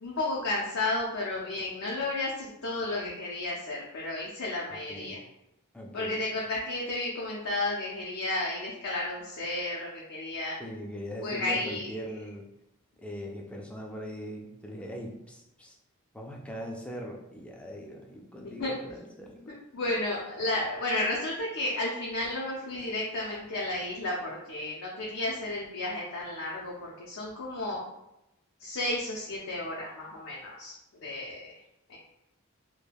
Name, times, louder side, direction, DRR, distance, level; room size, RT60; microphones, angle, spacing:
voice 1, 0.0-5.2 5.9-10.6 11.2-11.9 18.6-18.8 19.7-27.8 28.6-30.8 31.0-31.5 31.9-32.0, left 2 dB, 65° left, -4 dB, 0.5 m, -32 dB
voice 2, 5.7-6.2 10.6-12.5 13.0-15.8 16.1-19.5, equal, 5° left, 0 dB, 0.3 m, -40 dB
3.3 x 2.2 x 2.2 m, 0.87 s
head